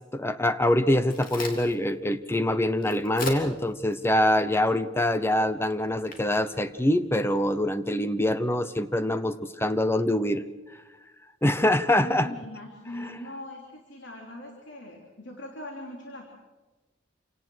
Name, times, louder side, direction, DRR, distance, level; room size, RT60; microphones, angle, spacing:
voice 1, 0.1-10.4 11.4-12.3, left 1 dB, 15° left, 11 dB, 0.8 m, -24 dB
Crack, 0.7-7.6, left 2 dB, 45° left, 3.3 m, -42 dB
voice 2, 12.0-16.3, left 1 dB, 65° left, 1 dB, 3.4 m, -41 dB
27.5 x 18.0 x 6.4 m, 1.2 s
head